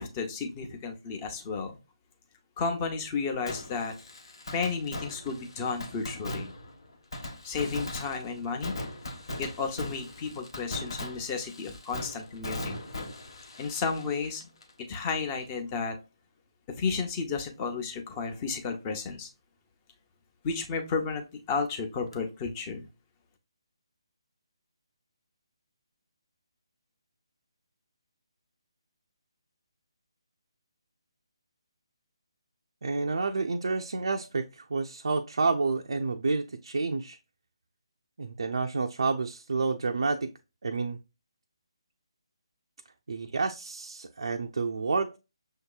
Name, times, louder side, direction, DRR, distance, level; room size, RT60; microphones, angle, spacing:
voice 1, 0.0-1.8 2.6-3.9 4.5-6.5 7.4-8.7 9.4-12.8 13.6-14.4 14.9-15.9 16.7-19.3 20.4-22.9, left 5 dB, 25° left, 0.8 m, -32 dB
Fireworks, 3.5-15.1 15.4-15.5 22.1-22.2, left 1 dB, 65° left, 1.1 m, -39 dB
voice 2, 32.8-37.2 38.2-40.3 40.6-41.0 43.1-45.2, right 4 dB, 70° right, 0.4 m, -29 dB
6.3 x 2.8 x 2.3 m
figure-of-eight pair, 150°, 3 cm